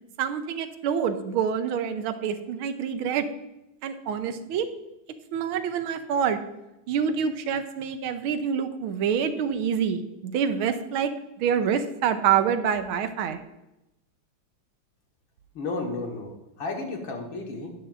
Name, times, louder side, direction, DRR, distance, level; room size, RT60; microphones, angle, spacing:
voice 1, 0.2-3.2 3.8-4.7 5.3-6.4 6.9-11.1 11.4-13.4, right 7 dB, 80° right, 9 dB, 1.5 m, -26 dB
voice 2, 15.5-17.7, left 3 dB, 65° left, 1 dB, 2.2 m, -33 dB
11.0 x 10.5 x 2.5 m, 0.92 s
omnidirectional pair, 2.3 m